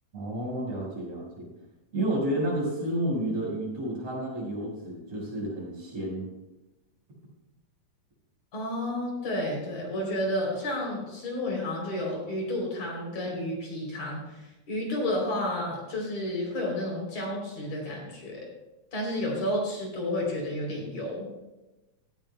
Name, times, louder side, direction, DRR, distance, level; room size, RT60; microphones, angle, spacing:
voice 1, 0.1-1.5 1.9-6.3, right 1 dB, 60° right, -4 dB, 6.0 m, -31 dB
voice 2, 8.5-18.5 18.9-21.3, left 1 dB, 55° left, -2 dB, 4.6 m, -31 dB
17.0 x 14.5 x 2.2 m, 1.0 s
omnidirectional pair, 3.5 m